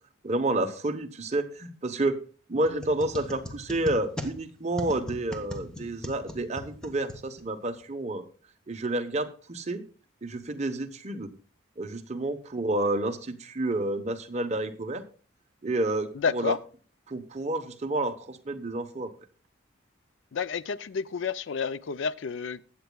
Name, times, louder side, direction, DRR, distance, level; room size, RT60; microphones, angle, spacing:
voice 1, 0.2-2.2 2.5-8.2 8.7-9.8 10.2-11.3 11.8-15.0 15.6-16.6 17.1-19.1, right 2 dB, 35° right, 0.9 m, -30 dB
sound 1, 2.6-7.7, left 1 dB, 5° left, 1.0 m, -40 dB
voice 2, 16.1-16.6 20.3-22.6, left 6 dB, 65° left, 0.4 m, -30 dB
21.5 x 8.1 x 2.3 m
head